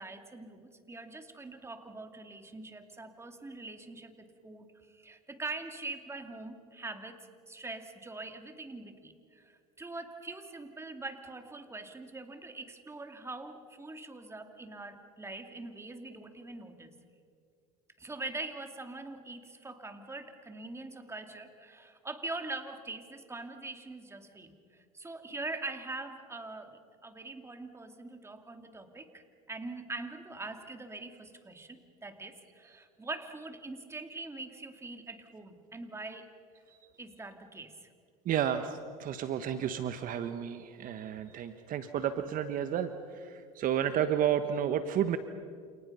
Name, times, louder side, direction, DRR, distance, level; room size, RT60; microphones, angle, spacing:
voice 1, 0.0-16.9 18.0-24.6 24.9-36.3 37.0-37.9, right 2 dB, 15° right, 6 dB, 2.7 m, -43 dB
voice 2, 38.2-45.2, right 9 dB, 45° right, 9 dB, 1.3 m, -31 dB
29.0 x 28.5 x 5.6 m, 2.2 s
hypercardioid pair, 90°, 19 cm